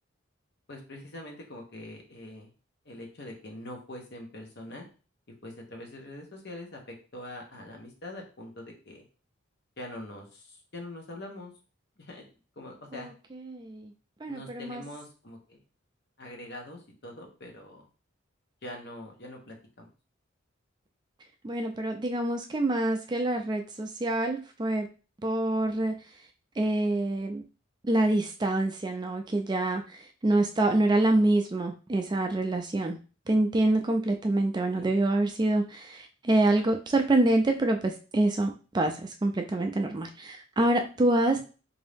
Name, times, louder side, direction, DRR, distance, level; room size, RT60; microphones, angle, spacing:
voice 1, 0.7-2.5 2.8-4.8 5.4-6.8 7.1-9.1 9.8-11.5 12.0-12.3 12.6-13.1 14.3-15.6 16.2-17.9 18.6-19.9 34.8-34.9, left 1 dB, 55° left, 1.0 m, -43 dB
voice 2, 13.5-13.9 14.2-14.8 21.4-24.9 25.2-25.9 26.6-27.4 27.9-30.0 30.2-33.0 33.3-41.4, right 2 dB, 20° right, 0.3 m, -26 dB
3.7 x 2.6 x 3.4 m
head